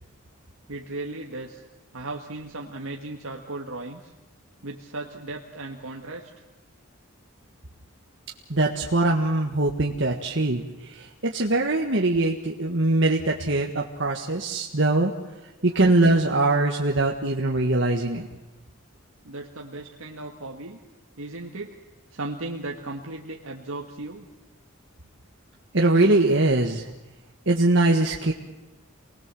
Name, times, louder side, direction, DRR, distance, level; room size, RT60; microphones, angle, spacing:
voice 1, 0.7-1.6 1.9-4.1 4.6-6.3 19.2-20.8 21.2-21.8 22.1-24.3, right 2 dB, 75° right, 0 dB, 1.9 m, -36 dB
voice 2, 8.5-15.1 15.6-18.3 25.7-26.9 27.4-28.3, right 2 dB, 60° right, 1 dB, 1.7 m, -22 dB
28.0 x 20.0 x 7.8 m, 1.1 s
head